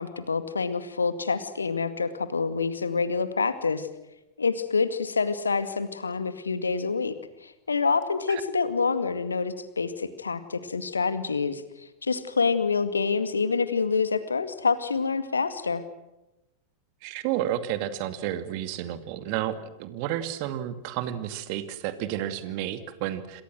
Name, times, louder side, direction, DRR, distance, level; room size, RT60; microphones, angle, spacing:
voice 1, 0.0-3.9 4.4-7.1 7.4-15.8, left 4 dB, 75° left, 11 dB, 2.2 m, -27 dB
voice 2, 17.0-23.4, right 12 dB, 45° right, 10 dB, 2.5 m, -31 dB
28.0 x 26.0 x 6.3 m, 0.96 s
figure-of-eight pair, 90°, 0 cm